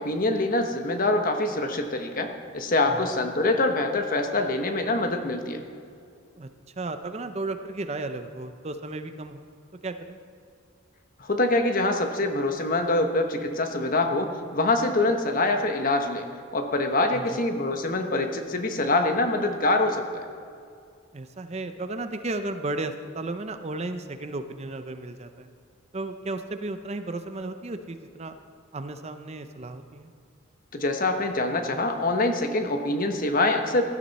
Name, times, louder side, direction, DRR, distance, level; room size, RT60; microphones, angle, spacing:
voice 1, 0.0-5.6 11.2-16.2 16.5-20.2 30.7-33.8, left 2 dB, 40° left, 5 dB, 1.1 m, -25 dB
voice 2, 6.8-9.5 9.8-10.2 17.1-17.4 21.1-25.5 25.9-28.4 28.7-30.1, right 2 dB, 30° right, 9 dB, 0.6 m, -34 dB
17.0 x 12.5 x 4.2 m, 2.4 s
head